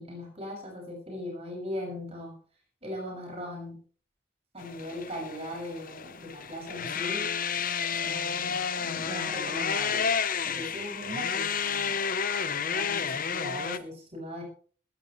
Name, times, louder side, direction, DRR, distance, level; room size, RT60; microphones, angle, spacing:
voice 1, 0.0-2.4 2.8-3.8 4.5-7.3 8.0-10.1 10.4-12.0 12.5-14.4, left 1 dB, 30° right, 0 dB, 6.7 m, -39 dB
sound 1, 4.6-13.8, left 6 dB, 40° left, 0.9 m, -31 dB
20.5 x 14.0 x 3.2 m, 0.41 s
head